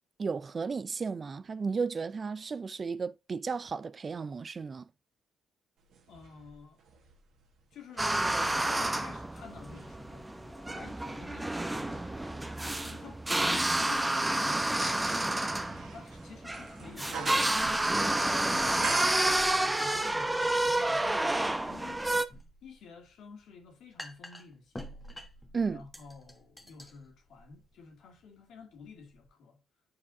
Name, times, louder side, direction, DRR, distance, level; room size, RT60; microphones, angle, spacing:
voice 1, 0.2-4.9 25.5-25.8, right 5 dB, 40° right, 0.4 m, -34 dB
sound 1, 5.9-8.1 8.6-20.0 20.3-20.4, right 6 dB, 70° right, 1.7 m, -45 dB
voice 2, 6.1-6.8 7.7-15.6 15.9-18.4 18.8-25.1 25.7-29.6, left 5 dB, 70° left, 2.1 m, -51 dB
sound 2, 8.0-22.3, right 1 dB, 15° right, 0.7 m, -30 dB
sound 3, 21.8-29.3, equal, 10° left, 1.3 m, -50 dB
8.5 x 4.7 x 2.7 m
supercardioid pair, 65°, 0 cm